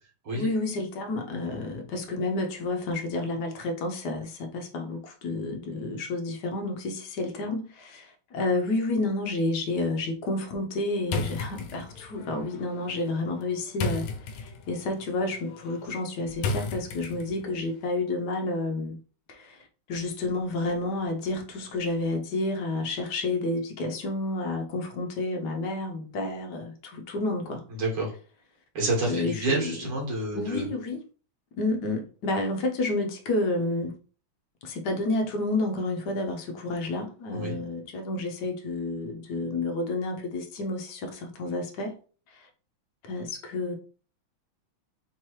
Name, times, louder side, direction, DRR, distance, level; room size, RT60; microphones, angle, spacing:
voice 1, 0.3-14.1 14.3-19.0 19.3-27.6 29.1-29.8 30.3-31.0 31.6-33.9 34.6-41.9 42.3-42.5 43.0-43.7, left 2 dB, 65° left, 1.1 m, -30 dB
sound 1, 11.0-17.5, left 3 dB, 90° left, 1.4 m, -35 dB
voice 2, 27.7-28.1 28.7-30.7 37.3-37.6, right 2 dB, 75° right, 2.5 m, -28 dB
4.5 x 2.9 x 3.0 m
omnidirectional pair, 2.2 m